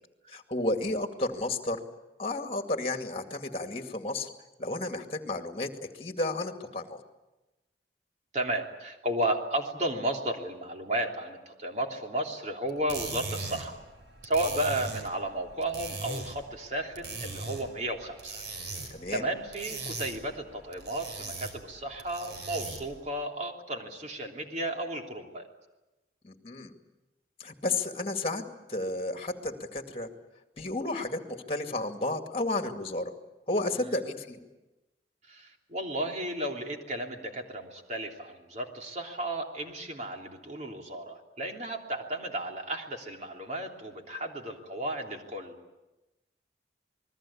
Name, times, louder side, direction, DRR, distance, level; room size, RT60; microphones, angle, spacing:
voice 1, 0.2-1.8 2.2-4.3 4.6-7.0 18.9-19.2 26.2-26.7 27.4-28.4 28.7-30.1 30.6-33.1 33.5-34.5, left 2 dB, 30° left, 5 dB, 2.3 m, -32 dB
voice 2, 8.3-13.8 14.2-18.4 18.7-25.5 35.3-45.6, right 1 dB, 40° right, 2 dB, 3.2 m, -33 dB
sound 1, 12.7-23.0, right 3 dB, 90° right, 5.0 m, -40 dB
28.0 x 20.5 x 8.7 m, 1.1 s
head